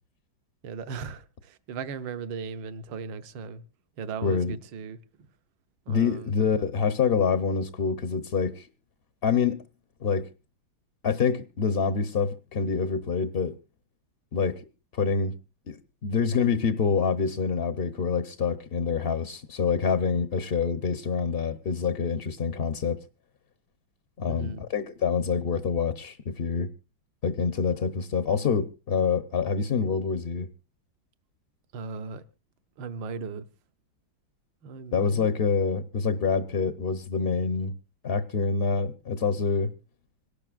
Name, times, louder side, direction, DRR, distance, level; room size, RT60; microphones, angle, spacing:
voice 1, 0.6-3.6 4.0-5.3 5.9-6.3 24.3-24.6 31.7-32.2 32.8-33.4 34.6-35.3, right 5 dB, 70° right, 1.6 m, -37 dB
voice 2, 4.2-4.6 5.9-8.7 9.2-9.6 10.0-10.3 11.0-13.6 14.3-14.6 14.9-15.3 15.7-23.0 24.2-26.7 27.2-30.5 34.9-37.7 38.0-39.7, left 5 dB, 60° left, 0.6 m, -26 dB
26.0 x 12.0 x 2.4 m
omnidirectional pair, 2.2 m